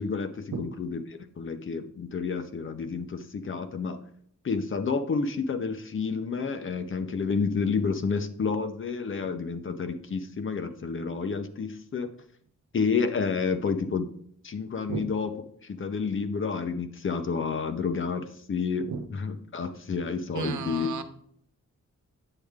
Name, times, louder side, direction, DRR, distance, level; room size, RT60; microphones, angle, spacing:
voice 1, 0.0-4.0 4.4-12.1 12.7-14.1 14.4-15.4 15.6-20.9, left 5 dB, 45° left, 8 dB, 0.8 m, -30 dB
voice 2, 20.3-21.0, right 6 dB, 75° right, 8 dB, 1.0 m, -33 dB
9.9 x 7.7 x 3.6 m, 0.64 s
wide cardioid pair, 175°, 29 cm